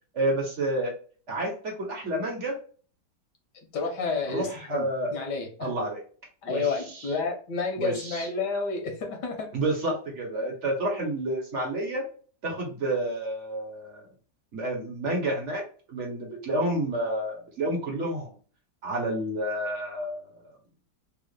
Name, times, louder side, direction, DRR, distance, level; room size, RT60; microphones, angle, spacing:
voice 1, 0.1-0.9 1.3-2.6 4.3-5.1 5.6-6.0 6.5-7.1 7.8-8.3 9.5-12.0 12.4-14.0 14.5-15.6 15.9-18.3 18.8-20.3, right 1 dB, 50° right, 0 dB, 1.3 m, -29 dB
voice 2, 3.7-5.7 6.4-9.5, left 4 dB, 90° left, 3 dB, 1.6 m, -30 dB
3.6 x 2.4 x 3.5 m, 0.41 s
omnidirectional pair, 1.8 m